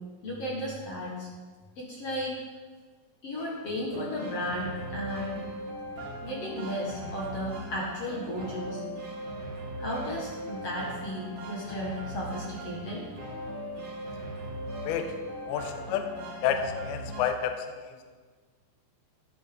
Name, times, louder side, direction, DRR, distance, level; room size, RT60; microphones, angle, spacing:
voice 1, 0.2-1.3 1.8-2.4 3.2-5.4 6.2-8.8 9.8-13.0, equal, 50° left, -4 dB, 2.0 m, -34 dB
sound 1, 3.9-17.2, equal, 40° right, 4.0 m, -39 dB
voice 2, 15.5-16.1 16.4-18.1, left 8 dB, 75° left, 6 dB, 2.5 m, -30 dB
13.0 x 11.0 x 3.9 m, 1.5 s
omnidirectional pair, 5.0 m